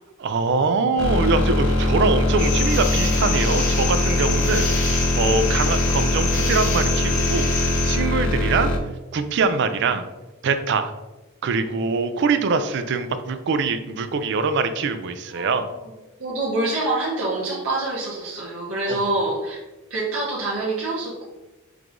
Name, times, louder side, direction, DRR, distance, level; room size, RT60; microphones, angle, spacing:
voice 1, 0.2-8.7 9.1-10.0 10.4-10.9 11.4-15.7 18.9-19.1, right 4 dB, 55° right, 10 dB, 0.3 m, -23 dB
sound 1, 1.0-8.8, left 1 dB, 70° left, 0.6 m, -22 dB
sound 2, 2.4-8.0, left 4 dB, 40° left, 0.8 m, -27 dB
voice 2, 15.3-15.6 16.2-19.6 19.9-21.2, right 2 dB, 75° right, -7 dB, 1.0 m, -26 dB
4.8 x 2.5 x 3.6 m, 1.1 s
head